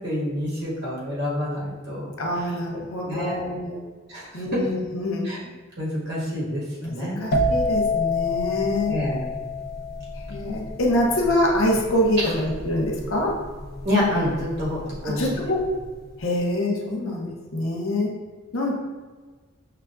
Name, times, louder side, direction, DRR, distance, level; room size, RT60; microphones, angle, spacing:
voice 1, 0.0-2.6 3.0-3.4 4.1-4.7 5.2-5.4 5.8-6.6 6.9-7.2 8.8-9.2 12.2-12.3 13.8-15.2, left 1 dB, 55° right, -7 dB, 1.4 m, -27 dB
voice 2, 2.2-3.8 4.3-5.3 6.8-8.9 10.3-13.3 15.0-15.6 16.2-18.1 18.5-18.7, left 1 dB, 85° left, -1 dB, 0.8 m, -25 dB
sound 1, 7.3-14.9 15.2-15.6, left 2 dB, 50° left, 0.5 m, -27 dB
5.6 x 2.3 x 2.4 m, 1.4 s
head